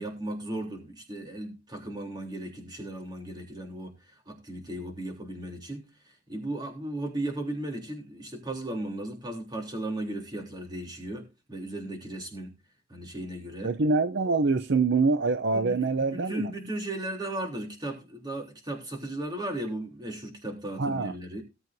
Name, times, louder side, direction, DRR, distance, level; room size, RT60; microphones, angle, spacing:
voice 1, 0.0-5.9 6.3-12.5 12.9-13.7 15.5-21.4, right 1 dB, 20° right, 3.4 m, -36 dB
voice 2, 13.6-16.5 20.8-21.1, right 3 dB, 60° right, 0.6 m, -25 dB
18.5 x 8.0 x 2.7 m
head